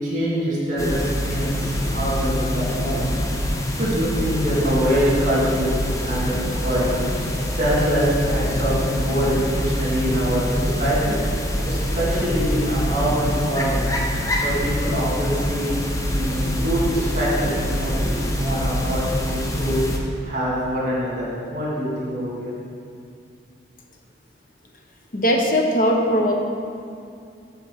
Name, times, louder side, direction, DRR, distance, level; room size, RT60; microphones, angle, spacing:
voice 1, 0.0-3.1 3.8-6.4 6.6-11.2 11.7-13.8 14.4-22.6, equal, 45° right, -6 dB, 2.2 m, -24 dB
sound 1, 0.8-20.0, equal, 15° left, 0.6 m, -25 dB
voice 2, 25.1-26.3, equal, 45° left, 1 dB, 0.9 m, -19 dB
8.0 x 4.4 x 6.3 m, 2.4 s
head